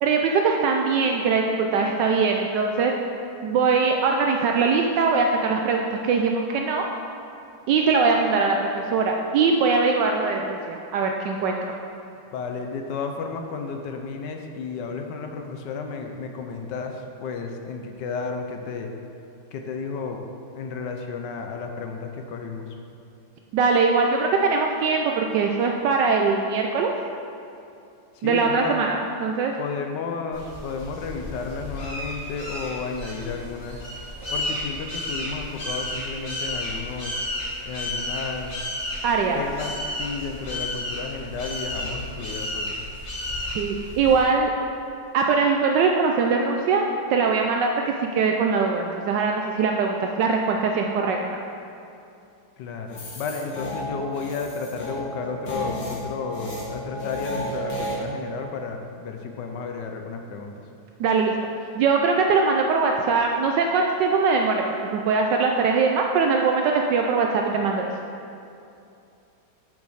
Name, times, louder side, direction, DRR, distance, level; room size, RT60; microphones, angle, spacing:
voice 1, 0.0-2.9 3.4-6.9 7.7-11.6 23.5-26.9 28.2-29.5 39.0-39.4 43.5-44.5 45.1-51.2 61.0-61.4 61.8-64.6 64.9-67.9, right 4 dB, 75° right, 2 dB, 1.1 m, -22 dB
voice 2, 12.3-18.9 19.5-20.2 20.5-22.7 28.2-28.8 29.6-33.8 34.3-37.1 37.7-38.5 39.3-42.8 52.6-60.5, left 5 dB, 70° left, 4 dB, 1.2 m, -32 dB
sound 1, 30.3-44.3, left 1 dB, 35° left, 2.2 m, -32 dB
sound 2, 52.9-58.0, equal, 85° left, 2.2 m, -33 dB
7.0 x 6.0 x 4.9 m, 2.7 s
omnidirectional pair, 2.1 m